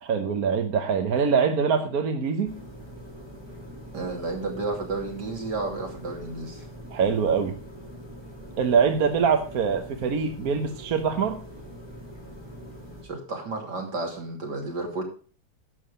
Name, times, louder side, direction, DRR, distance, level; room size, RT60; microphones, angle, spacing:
voice 1, 0.0-2.6 6.9-7.5 8.6-11.4, right 6 dB, 65° right, 6 dB, 1.5 m, -24 dB
sound 1, 2.4-13.0, equal, 15° right, 3.6 m, -43 dB
voice 2, 3.9-6.7 13.0-15.0, right 3 dB, 80° right, 1 dB, 3.5 m, -32 dB
11.0 x 7.5 x 5.1 m, 0.41 s
omnidirectional pair, 1.8 m